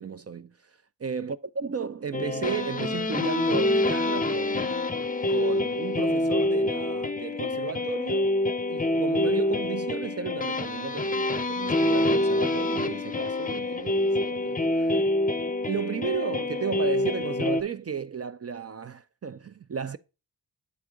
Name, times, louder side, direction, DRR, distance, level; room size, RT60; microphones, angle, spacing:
voice 1, 0.0-4.9 5.3-8.4 8.7-15.0 15.6-20.0, right 6 dB, 35° right, 0.4 m, -34 dB
sound 1, 2.1-17.6, left 2 dB, 20° left, 0.5 m, -26 dB
8.0 x 3.7 x 4.9 m
cardioid pair, 55°, 45 cm